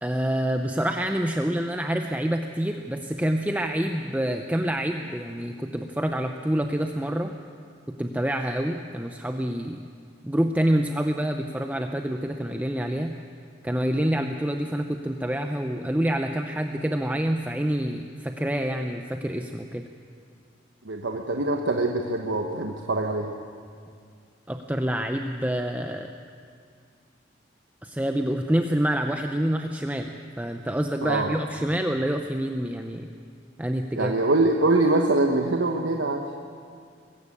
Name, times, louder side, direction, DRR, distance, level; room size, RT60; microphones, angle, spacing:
voice 1, 0.0-7.3 8.0-9.8 10.2-13.1 13.6-19.8 24.5-26.1 27.8-33.1 33.6-34.1, right 1 dB, 10° right, 5 dB, 0.6 m, -27 dB
voice 2, 20.8-23.3 31.0-31.3 34.0-36.2, right 2 dB, 75° right, 2 dB, 1.2 m, -23 dB
22.0 x 15.0 x 8.6 m, 2.2 s
head